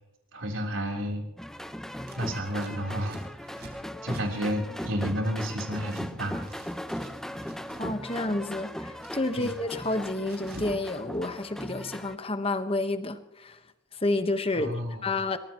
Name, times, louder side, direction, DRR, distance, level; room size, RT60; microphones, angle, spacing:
voice 1, 0.3-1.2 2.2-3.7 4.0-6.4 9.4-9.5 14.5-15.2, equal, 85° right, 1 dB, 3.7 m, -31 dB
sound 1, 1.4-12.1, equal, ahead, 0.6 m, -38 dB
Scissors, 2.0-6.1 6.3-7.9 8.2-10.8 11.1-12.0, right 2 dB, 55° right, 4.2 m, -50 dB
voice 2, 7.8-13.6 13.9-14.7 15.0-15.4, left 2 dB, 30° left, 9 dB, 1.2 m, -30 dB
23.0 x 19.5 x 3.0 m, 0.91 s
head